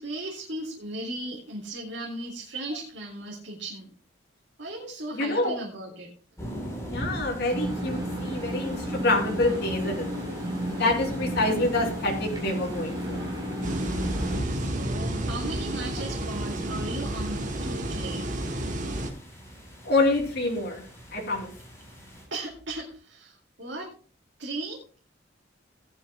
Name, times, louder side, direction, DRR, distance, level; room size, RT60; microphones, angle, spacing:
voice 1, 0.0-3.9 4.6-6.1 14.5-18.3 22.3-23.9 24.4-24.8, right 1 dB, 65° right, -3 dB, 2.3 m, -36 dB
voice 2, 5.1-5.6 6.9-10.1 10.7-13.3 19.8-20.8 21.1-21.5, left 2 dB, 60° left, 0 dB, 3.1 m, -26 dB
sound 1, 6.4-22.2, equal, 15° left, 4.2 m, -40 dB
sound 2, 7.5-14.4, equal, 20° right, 4.1 m, -32 dB
sound 3, 13.6-19.1, right 1 dB, 40° right, 1.6 m, -31 dB
16.5 x 10.5 x 2.3 m, 0.40 s
head